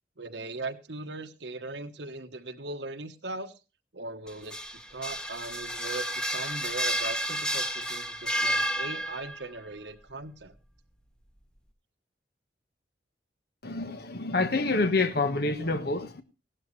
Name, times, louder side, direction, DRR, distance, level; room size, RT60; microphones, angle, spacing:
voice 1, 0.2-3.6 3.9-4.6 4.9-10.5, right 3 dB, 70° right, 1.3 m, -39 dB
sound 1, 4.3-9.5, equal, 5° left, 1.1 m, -31 dB
voice 2, 13.6-16.2, left 3 dB, 60° left, 1.4 m, -27 dB
17.0 x 12.5 x 3.2 m
head